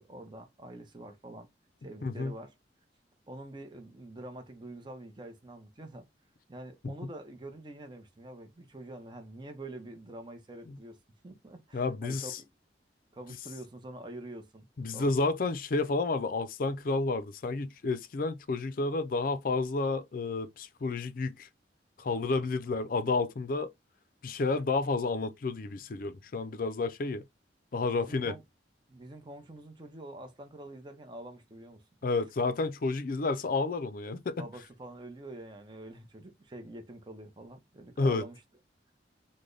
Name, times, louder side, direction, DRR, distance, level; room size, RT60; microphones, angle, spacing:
voice 1, 0.0-1.5 1.8-2.5 3.3-6.1 6.5-11.0 11.2-12.3 13.1-14.7 14.9-15.2 28.0-28.4 28.9-31.8 34.4-38.4, right 1 dB, 25° right, 0.7 m, -46 dB
voice 2, 2.0-2.3 6.8-6.9 10.7-10.8 11.7-12.4 14.8-21.5 22.0-23.7 24.2-27.2 27.7-28.3 32.0-34.4 38.0-38.2, left 3 dB, 50° left, 0.4 m, -30 dB
3.3 x 2.1 x 3.8 m
head